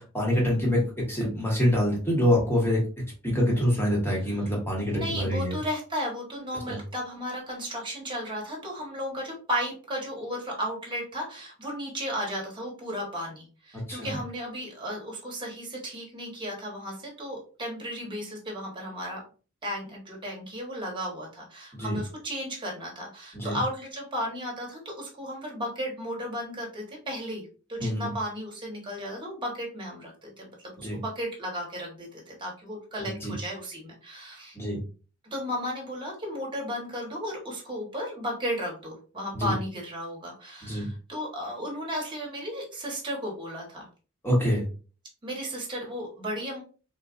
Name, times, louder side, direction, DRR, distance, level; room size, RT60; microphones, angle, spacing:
voice 1, 0.0-2.8 3.2-5.6 6.7-6.8 13.7-14.2 21.7-22.0 23.3-23.6 27.8-28.1 30.8-31.0 33.0-33.3 34.5-34.8 39.3-39.5 40.6-40.9 44.2-44.6, equal, 10° left, -3 dB, 1.3 m, -26 dB
voice 2, 4.9-19.2 19.6-34.6 35.3-43.9 45.2-46.6, equal, 25° right, -2 dB, 1.3 m, -34 dB
3.8 x 2.5 x 2.5 m, 0.36 s
head